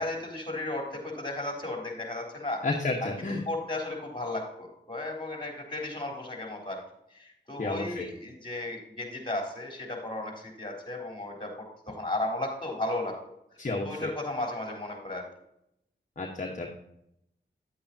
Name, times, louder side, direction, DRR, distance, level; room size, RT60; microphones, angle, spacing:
voice 1, 0.0-2.6 3.0-6.8 7.1-10.3 10.6-11.5 11.9-13.2 13.8-15.2, left 2 dB, 25° left, 0 dB, 3.7 m, -34 dB
voice 2, 2.6-3.4 7.6-8.1 13.6-14.1 16.2-16.7, left 2 dB, 40° left, 1 dB, 1.3 m, -31 dB
10.0 x 8.4 x 2.8 m, 0.78 s
cardioid pair, 50°, 19 cm